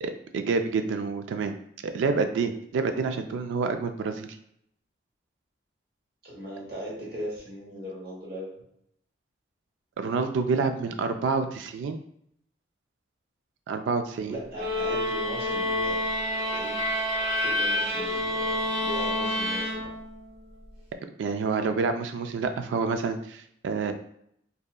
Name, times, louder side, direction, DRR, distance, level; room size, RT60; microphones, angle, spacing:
voice 1, 0.0-1.5 1.8-4.3 10.0-12.0 13.7-14.3 21.2-23.9, right 4 dB, 85° right, 8 dB, 0.3 m, -28 dB
voice 2, 6.2-8.6 14.3-16.1 16.5-16.8 17.4-19.9, equal, 55° right, -4 dB, 1.0 m, -38 dB
sound 1, 14.5-20.2, left 1 dB, 30° right, 0.6 m, -28 dB
2.7 x 2.3 x 2.3 m, 0.70 s
head